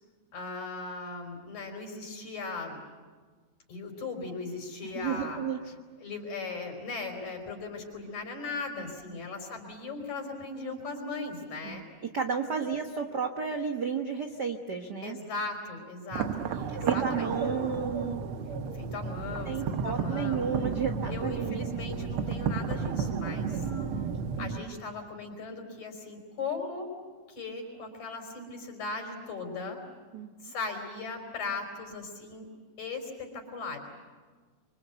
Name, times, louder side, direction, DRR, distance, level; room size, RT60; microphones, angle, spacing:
voice 1, 0.3-2.8 3.7-5.4 6.0-11.9 15.0-17.4 18.7-20.5 21.1-23.7 24.4-26.9 27.3-29.8 30.4-32.5 32.8-33.8, left 3 dB, 60° left, 3 dB, 5.9 m, -38 dB
voice 2, 4.9-5.6 8.8-9.2 11.6-11.8 12.1-15.2 16.8-18.2 19.4-21.8 23.6-24.1 24.4-24.8 30.1-30.5, right 6 dB, 55° right, 4 dB, 1.1 m, -33 dB
sound 1, 16.1-24.6, right 6 dB, 75° right, 1.2 m, -32 dB
25.5 x 25.0 x 8.2 m, 1.5 s
omnidirectional pair, 3.8 m